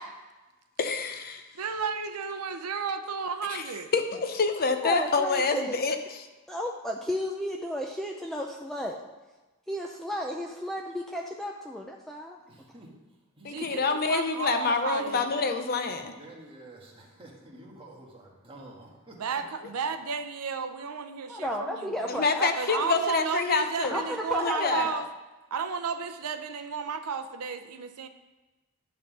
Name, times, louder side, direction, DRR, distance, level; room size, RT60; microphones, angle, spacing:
voice 1, 0.8-1.4 3.5-3.6 3.9-6.3 13.4-16.1 22.1-24.0 24.4-25.0, left 4 dB, 45° left, 7 dB, 0.6 m, -27 dB
voice 2, 1.5-3.9 13.4-15.4 19.2-22.0 22.5-25.1 25.5-28.1, right 5 dB, 80° right, 9 dB, 0.6 m, -33 dB
voice 3, 4.8-5.7 6.5-9.0 9.7-12.4 21.3-22.8 23.8-24.9, equal, ahead, 0 dB, 0.4 m, -33 dB
voice 4, 12.5-12.9 13.4-13.7 15.8-19.7, right 1 dB, 25° right, -2 dB, 1.5 m, -49 dB
11.0 x 3.7 x 6.1 m, 1.2 s
head